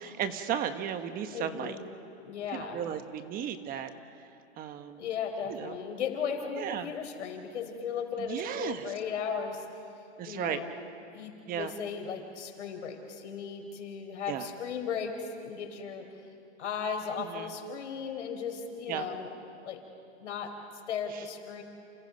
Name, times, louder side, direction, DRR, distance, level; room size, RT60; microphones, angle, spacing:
voice 1, 0.0-1.8 2.5-3.9 4.2-4.3 4.6-5.0 5.5-5.8 6.6-6.9 8.2-8.9 10.2-10.6 11.5-11.7 14.3-14.5 17.2-17.5 18.9-19.1 21.1-21.2, right 9 dB, 25° right, 9 dB, 1.2 m, -35 dB
voice 2, 1.3-1.9 2.2-2.8 5.0-9.6 10.3-10.7 11.1-16.1 16.6-19.3 19.6-19.8 20.2-20.5 20.9-21.6, left 6 dB, 90° left, 4 dB, 4.3 m, -36 dB
29.5 x 29.0 x 5.3 m, 2.5 s
supercardioid pair, 145°, 34 cm